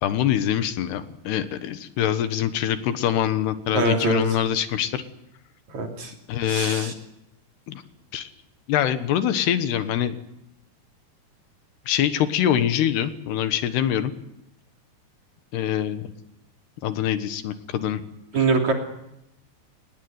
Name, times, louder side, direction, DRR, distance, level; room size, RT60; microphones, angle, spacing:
voice 1, 0.0-5.0 6.3-6.9 7.7-7.8 8.1-8.3 8.7-10.2 11.9-14.1 15.5-16.1 16.8-18.0, left 10 dB, 80° left, 10 dB, 3.4 m, -24 dB
voice 2, 3.7-4.2 5.7-6.1 6.4-6.9 18.3-18.7, right 3 dB, 45° right, 2 dB, 4.0 m, -23 dB
23.5 x 19.5 x 9.5 m, 0.83 s
omnidirectional pair, 4.8 m